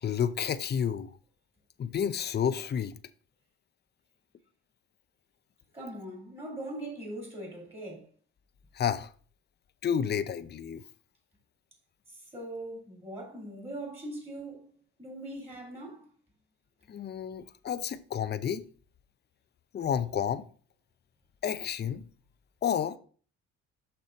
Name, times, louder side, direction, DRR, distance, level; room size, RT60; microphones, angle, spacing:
voice 1, 0.0-1.1 1.8-2.9 8.8-9.1 9.8-10.8 16.9-18.6 19.7-20.4 21.4-22.0 22.6-23.0, left 8 dB, 35° left, 0.5 m, -30 dB
voice 2, 5.7-8.1 12.3-16.0, right 1 dB, 20° right, 3.3 m, -41 dB
6.5 x 5.6 x 3.9 m
cardioid pair, 90°, 30 cm